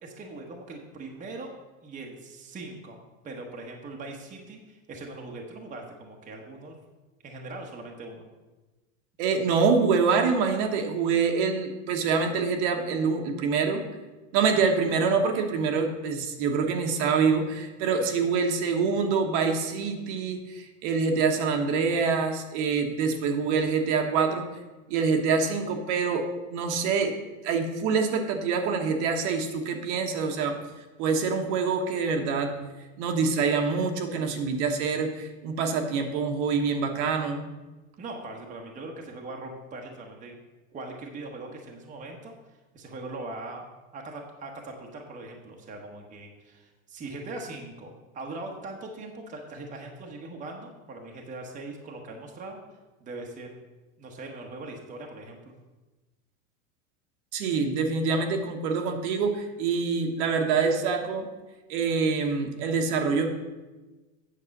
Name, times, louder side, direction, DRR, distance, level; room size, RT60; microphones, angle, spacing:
voice 1, 0.0-1.5 1.8-3.0 3.2-6.7 7.2-8.3 38.0-40.4 40.7-42.3 42.7-43.6 43.9-52.6 53.0-53.5 54.0-55.5, right 2 dB, 20° right, 1 dB, 1.1 m, -40 dB
voice 2, 9.2-13.8 14.3-24.4 24.9-27.2 27.4-30.6 31.0-32.5 33.0-37.5 57.3-61.3 61.7-63.3, right 5 dB, 55° right, 4 dB, 1.3 m, -25 dB
8.7 x 6.6 x 5.3 m, 1.2 s
supercardioid pair, 145°, 42 cm